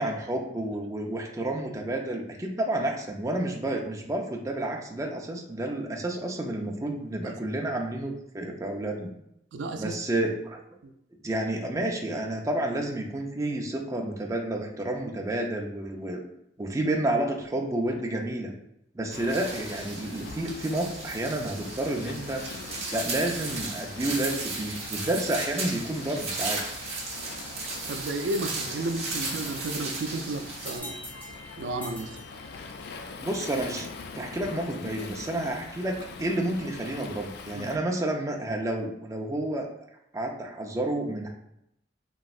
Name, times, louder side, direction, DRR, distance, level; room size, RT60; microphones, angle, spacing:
voice 1, 0.0-9.1 9.8-10.6 11.2-16.2 16.6-18.5 18.9-22.5 22.9-26.6 33.2-33.9 34.2-39.7 40.1-41.3, right 1 dB, 20° right, 0 dB, 0.4 m, -30 dB
voice 2, 9.5-10.0 10.8-10.9 27.8-31.0 31.6-32.2 37.5-37.7, right 2 dB, 85° right, 6 dB, 0.3 m, -33 dB
Waves surf, 19.1-37.8, left 4 dB, 60° left, 0.3 m, -43 dB
sound 1, 19.3-30.8, right 3 dB, 35° right, 0.8 m, -35 dB
sound 2, 30.5-33.1, left 1 dB, 10° left, 0.7 m, -44 dB
3.0 x 2.6 x 2.4 m, 0.77 s
head